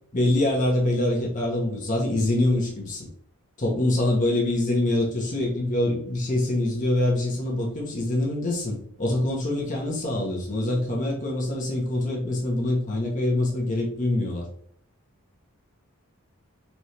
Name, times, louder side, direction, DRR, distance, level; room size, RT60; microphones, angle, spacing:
voice 1, 0.1-3.1 3.6-14.4, left 1 dB, 35° left, -3 dB, 0.9 m, -25 dB
4.2 x 3.1 x 3.2 m, 0.66 s
head